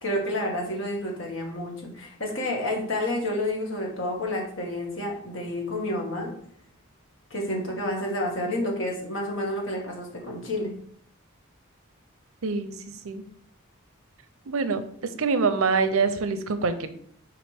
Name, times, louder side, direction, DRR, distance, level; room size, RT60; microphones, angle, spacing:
voice 1, 0.0-6.3 7.3-10.7, left 1 dB, 65° left, -1 dB, 2.0 m, -29 dB
voice 2, 12.4-13.2 14.5-16.9, right 4 dB, 80° right, 11 dB, 0.7 m, -25 dB
6.1 x 4.9 x 3.5 m, 0.62 s
head